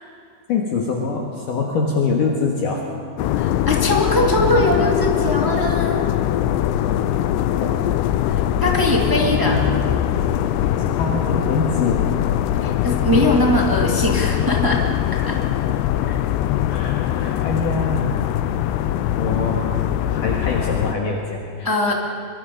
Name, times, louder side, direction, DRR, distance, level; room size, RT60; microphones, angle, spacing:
voice 1, 0.5-2.8 7.6-7.8 9.2-9.8 11.0-12.1 16.7-18.2 19.2-21.9, left 4 dB, 60° left, -1 dB, 3.0 m, -24 dB
sound 1, 3.2-20.9, left 11 dB, 85° left, 2.8 m, -21 dB
voice 2, 3.3-6.0 8.3-9.6 12.6-14.8 15.2-15.4 16.0-16.2 21.6-21.9, left 1 dB, 35° right, -1 dB, 0.3 m, -21 dB
25.0 x 23.5 x 5.4 m, 2.5 s
omnidirectional pair, 4.8 m